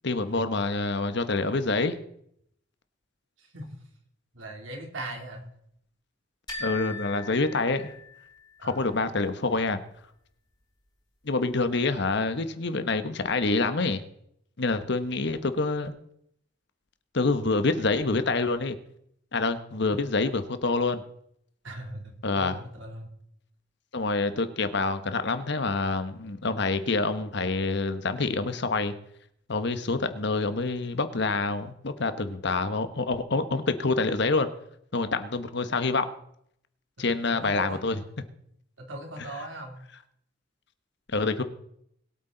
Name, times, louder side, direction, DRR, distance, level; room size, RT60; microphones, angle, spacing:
voice 1, 0.0-2.0 6.6-7.9 8.6-9.8 11.2-14.0 14.6-15.9 17.1-18.8 19.3-21.0 22.2-22.6 23.9-28.9 29.5-34.5 34.9-36.1 37.0-38.0 41.1-41.4, left 3 dB, 65° left, 1.1 m, -27 dB
voice 2, 3.4-3.7 4.3-5.5 8.6-8.9 19.9-20.0 21.6-23.1 37.1-37.8 38.8-39.7, right 1 dB, 85° right, 2.9 m, -40 dB
sound 1, 6.5-8.4, left 3 dB, 25° left, 5.3 m, -39 dB
22.0 x 8.4 x 3.9 m
head